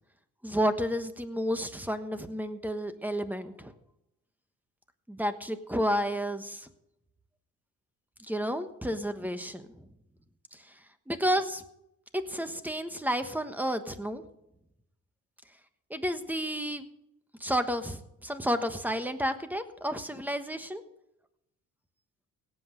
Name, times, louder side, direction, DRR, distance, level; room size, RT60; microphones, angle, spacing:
voice 1, 0.4-3.7 5.1-6.7 8.3-9.7 11.1-11.6 12.1-14.2 15.9-16.8 17.4-20.8, equal, 5° right, 9 dB, 1.3 m, -31 dB
17.5 x 8.0 x 5.2 m, 0.83 s
cardioid pair, 90°, 30 cm